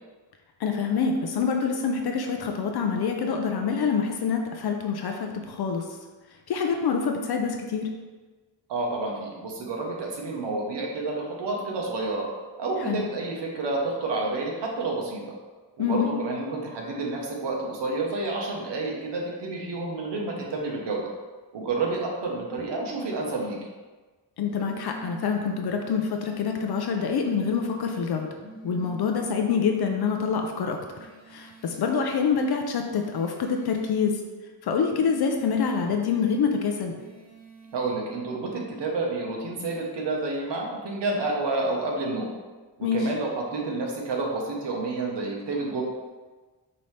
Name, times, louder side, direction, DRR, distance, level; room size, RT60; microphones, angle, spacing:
voice 1, 0.6-5.9 6.5-7.9 12.9-13.1 15.8-16.1 24.4-28.3 28.6-30.8 31.3-34.2 34.6-37.0 42.8-43.0, left 6 dB, 60° left, 3 dB, 0.6 m, -26 dB
voice 2, 8.7-12.3 12.6-15.2 15.8-21.0 21.5-23.6 37.7-42.3 42.8-45.8, right 3 dB, 70° right, -1 dB, 1.1 m, -29 dB
sound 1, 24.4-25.4 26.4-27.4 28.4-29.4 30.9-32.0 32.9-34.0 34.9-36.0 36.9-38.0, right 1 dB, 20° left, 0.9 m, -45 dB
5.4 x 2.9 x 3.2 m, 1.3 s
cardioid pair, 115°, 43 cm